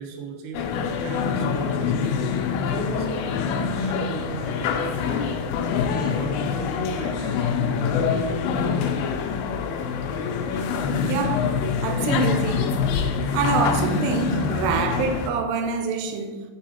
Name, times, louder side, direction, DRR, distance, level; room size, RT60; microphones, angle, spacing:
voice 1, 0.0-5.9 6.2-8.8, right 4 dB, 70° right, 2.1 m, -38 dB
sound 1, 0.5-15.3, left 6 dB, 80° left, 2.4 m, -25 dB
voice 2, 11.0-11.5 11.8-12.8 13.3-16.4, right 5 dB, 85° right, 2.7 m, -26 dB
5.7 x 5.5 x 4.3 m
omnidirectional pair, 4.7 m